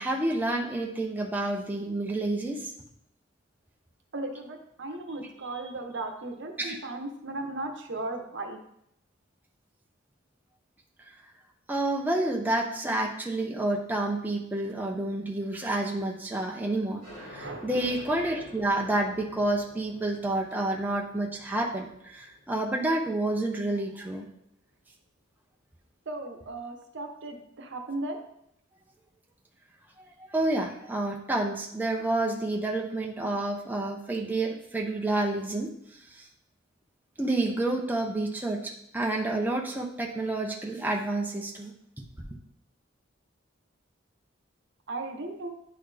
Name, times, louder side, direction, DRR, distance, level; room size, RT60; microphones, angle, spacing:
voice 1, 0.0-2.7 5.2-5.3 6.6-6.8 11.7-24.2 30.3-35.7 36.2-36.3 37.2-42.0, right 2 dB, 10° right, 0 dB, 0.7 m, -29 dB
voice 2, 4.1-8.6 17.3-17.6 26.1-28.2 44.9-45.5, right 2 dB, 65° right, 4 dB, 0.9 m, -36 dB
sound 1, 17.0-24.3, equal, 75° left, 2.9 m, -50 dB
9.8 x 3.9 x 3.4 m, 0.74 s
head